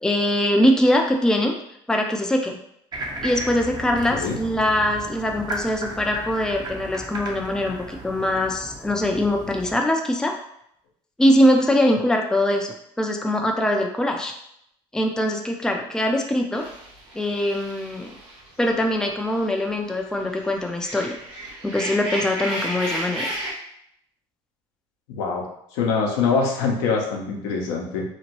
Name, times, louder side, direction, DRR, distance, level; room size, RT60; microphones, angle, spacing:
voice 1, 0.0-1.5 1.9-2.6 3.2-10.3 11.2-14.3 14.9-16.6 17.1-18.1 18.6-21.1 21.6-23.3, left 1 dB, 5° left, 2 dB, 0.4 m, -22 dB
sound 1, 2.9-9.7, right 1 dB, 30° right, 0.6 m, -35 dB
sound 2, 16.5-19.5 19.8-23.5, right 1 dB, 85° right, 0.8 m, -33 dB
voice 2, 25.1-25.4 25.7-28.0, left 5 dB, 80° left, 0 dB, 0.7 m, -24 dB
2.9 x 2.1 x 2.9 m, 0.73 s
supercardioid pair, 75°, 13 cm